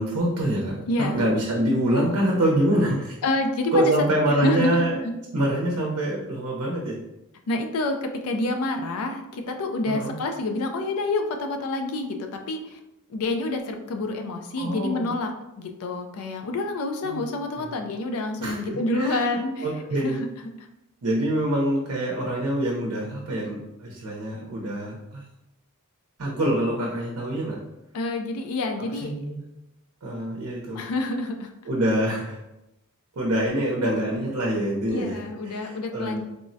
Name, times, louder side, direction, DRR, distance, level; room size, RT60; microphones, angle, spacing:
voice 1, 0.0-3.2 3.7-5.0 5.3-7.0 9.9-10.2 14.6-15.1 17.0-17.2 17.6-17.7 18.4-20.2 21.0-25.2 26.2-27.6 28.9-29.4 30.0-30.8 31.6-32.4 33.2-35.2 35.4-36.2, right 1 dB, 70° right, -2 dB, 0.6 m, -25 dB
voice 2, 0.9-1.2 3.2-3.9 4.4-5.1 7.5-12.8 13.1-19.7 20.0-20.3 20.6-20.7 27.9-29.1 30.8-31.5 34.9-36.2, left 2 dB, 70° left, 5 dB, 0.4 m, -28 dB
3.5 x 2.0 x 2.6 m, 0.91 s
head